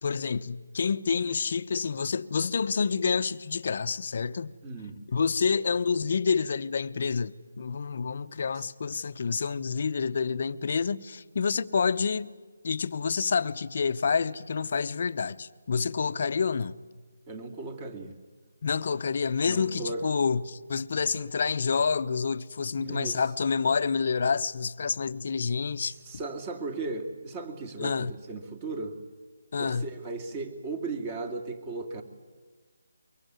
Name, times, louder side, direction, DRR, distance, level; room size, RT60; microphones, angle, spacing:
voice 1, 0.0-4.5 5.1-12.3 12.6-16.8 18.6-26.0 27.8-28.1 29.5-29.9, left 5 dB, 50° left, 0.9 m, -28 dB
voice 2, 4.6-5.0 8.5-8.7 17.3-18.2 19.4-20.0 22.8-23.2 25.9-29.0 29.6-32.0, right 3 dB, 25° right, 2.5 m, -36 dB
24.0 x 23.5 x 9.5 m
figure-of-eight pair, 160°, 0 cm